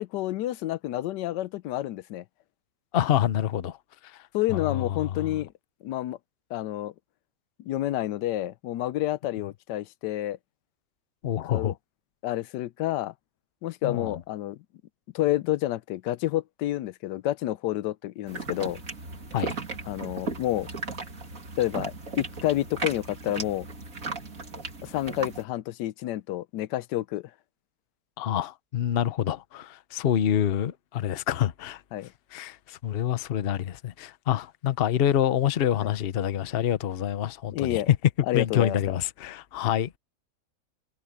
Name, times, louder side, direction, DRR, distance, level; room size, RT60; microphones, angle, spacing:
voice 1, 0.0-2.2 4.3-5.5 5.8-6.2 6.5-6.9 7.6-10.4 11.5-11.7 12.2-13.1 13.6-14.6 15.1-18.8 19.9-20.7 21.6-23.7 24.8-27.3 31.9-32.1 37.5-37.9 38.3-38.8, left 14 dB, 85° left, 1.2 m, -29 dB
voice 2, 2.9-3.8 4.5-5.4 11.2-11.7 13.8-14.2 19.3-19.6 28.2-31.8 32.3-38.0 38.3-40.0, left 10 dB, 50° left, 0.8 m, -27 dB
sound 1, 18.3-25.4, right 3 dB, 50° right, 3.1 m, -36 dB
omnidirectional pair, 1.8 m